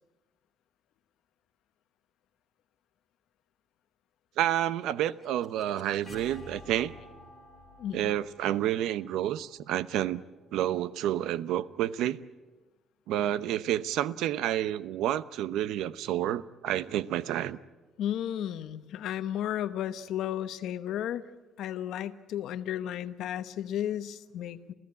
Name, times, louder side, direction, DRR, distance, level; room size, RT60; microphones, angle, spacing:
voice 1, 4.4-6.9 7.9-10.2 10.5-12.2 13.1-17.6, right 12 dB, 85° right, 16 dB, 0.8 m, -29 dB
sound 1, 4.6-10.5, left 2 dB, ahead, 4.3 m, -52 dB
voice 2, 7.8-8.1 18.0-21.2 21.6-24.7, left 11 dB, 65° left, 12 dB, 1.0 m, -33 dB
28.0 x 15.5 x 9.8 m, 1.2 s
cardioid pair, 180°, 0 cm